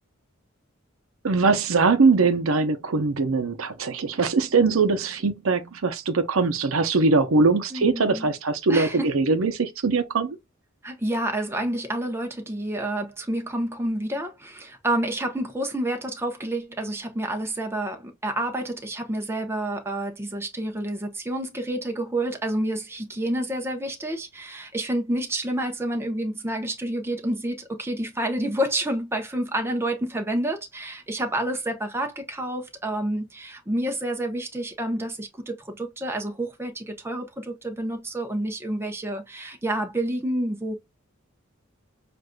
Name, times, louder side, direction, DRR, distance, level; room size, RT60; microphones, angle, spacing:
voice 1, 1.2-10.4, right 4 dB, 75° right, 0.7 m, -22 dB
voice 2, 7.7-8.3 8.7-9.1 10.8-40.7, right 1 dB, 10° right, 0.8 m, -29 dB
6.4 x 2.5 x 2.2 m
head